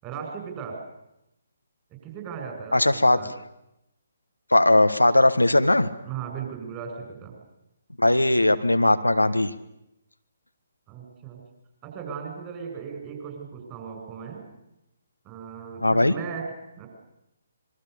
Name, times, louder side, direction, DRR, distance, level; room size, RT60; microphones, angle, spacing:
voice 1, 0.0-0.8 2.0-2.8 3.2-3.3 6.0-7.4 10.9-11.4 11.8-14.5 15.2-16.9, right 6 dB, 20° right, 3 dB, 7.3 m, -37 dB
voice 2, 2.7-3.2 4.5-5.9 8.0-9.5 15.8-16.1, left 1 dB, 85° left, 10 dB, 1.4 m, -19 dB
26.5 x 23.0 x 6.9 m, 0.87 s
figure-of-eight pair, 135°, 0 cm